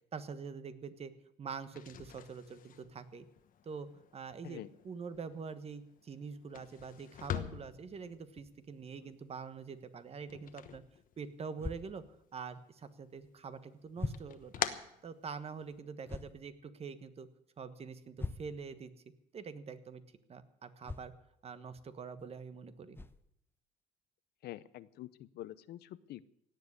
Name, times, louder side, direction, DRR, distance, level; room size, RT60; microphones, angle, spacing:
voice 1, 0.1-1.1 1.4-3.2 3.6-10.8 11.2-12.0 12.3-14.6 15.0-17.3 17.6-18.9 19.3-20.0 20.3-21.1 21.4-23.0, right 5 dB, 35° right, 12 dB, 1.3 m, -45 dB
sound 1, 1.6-11.6 11.9-12.8 13.2-15.8, left 10 dB, 55° left, 1.2 m, -45 dB
sound 2, 11.6-11.8 13.2-13.3 14.0-14.3 16.1-16.4 18.2-18.6 20.8-21.1 22.2-22.3 22.9-23.2, left 2 dB, 15° left, 0.8 m, -40 dB
voice 2, 24.4-26.3, left 14 dB, 70° left, 16 dB, 0.7 m, -47 dB
17.0 x 7.6 x 9.7 m, 0.75 s
cardioid pair, 110°, 17 cm